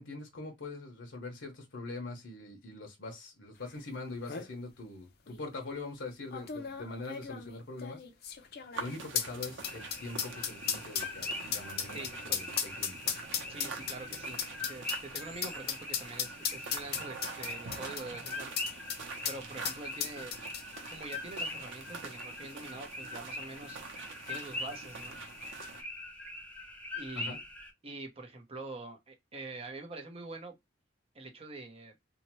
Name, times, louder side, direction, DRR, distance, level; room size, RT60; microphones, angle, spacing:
voice 1, 0.0-8.0 8.8-13.0 27.1-27.4, left 2 dB, 80° left, 0.9 m, -43 dB
sound 1, 3.8-3.9 4.1-4.5 5.3-5.4 6.3-19.0 19.3-19.4 19.6-20.9 21.1-21.2, left 8 dB, 55° left, 0.5 m, -35 dB
sound 2, 8.7-25.8, right 4 dB, 80° right, 0.7 m, -46 dB
sound 3, 9.6-27.7, left 2 dB, 5° left, 0.5 m, -43 dB
voice 2, 11.9-12.4 13.5-18.8 19.3-20.3 20.9-23.8 24.3-25.3 26.9-27.4 27.8-30.5 31.1-31.9, right 2 dB, 30° right, 0.7 m, -45 dB
2.7 x 2.1 x 3.0 m
head